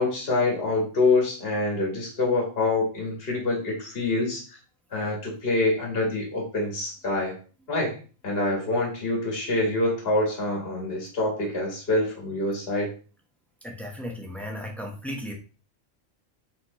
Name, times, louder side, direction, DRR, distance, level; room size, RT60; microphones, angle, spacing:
voice 1, 0.0-4.4 4.9-7.3 7.7-8.0 8.2-12.9, left 2 dB, 50° left, -2 dB, 1.7 m, -26 dB
voice 2, 13.6-15.3, equal, ahead, 0 dB, 0.7 m, -35 dB
4.2 x 4.1 x 3.0 m, 0.37 s
omnidirectional pair, 1.3 m